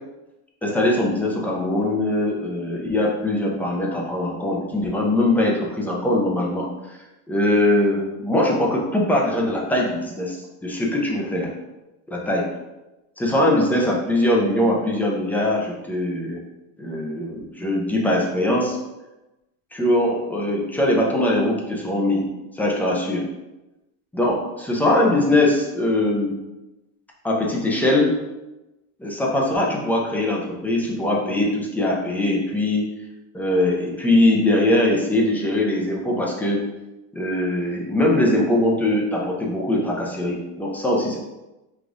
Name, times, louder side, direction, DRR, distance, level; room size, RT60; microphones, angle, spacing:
voice 1, 0.6-7.0 7.3-11.5 12.1-12.5 13.2-16.4 16.8-18.8 19.7-22.2 22.5-23.2 24.1-26.3 27.2-28.2 29.0-32.9 33.3-36.6 37.1-41.2, left 1 dB, 5° left, -2 dB, 0.5 m, -21 dB
5.0 x 2.4 x 3.7 m, 1.0 s
supercardioid pair, 150°, 37 cm